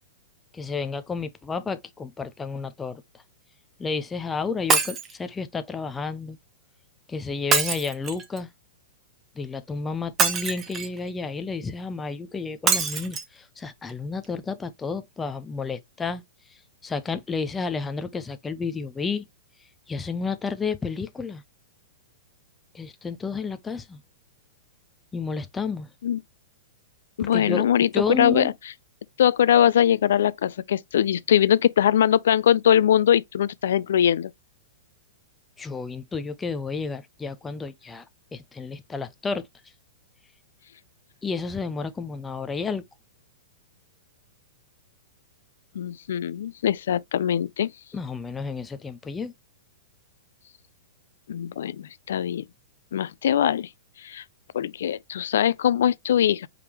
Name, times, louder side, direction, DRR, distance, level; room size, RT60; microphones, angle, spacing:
voice 1, 0.5-3.0 3.8-6.4 7.1-8.5 9.4-16.2 16.8-19.3 19.9-21.4 22.7-24.0 25.1-25.9 27.2-27.7 27.9-28.5 35.6-38.0 38.3-39.5 41.2-42.8 47.9-49.3, left 4 dB, 10° left, 0.4 m, -31 dB
Shatter, 4.7-5.1 7.5-8.4 10.2-11.0 12.7-13.2 13.9-14.0 14.2-14.3, right 5 dB, 15° right, 0.9 m, -24 dB
voice 2, 27.2-28.5 29.2-34.3 45.8-47.7 51.3-52.4 52.9-53.7 54.0-54.2 54.5-56.5, left 10 dB, 70° left, 0.4 m, -21 dB
4.9 x 3.5 x 2.8 m
hypercardioid pair, 160°, 0 cm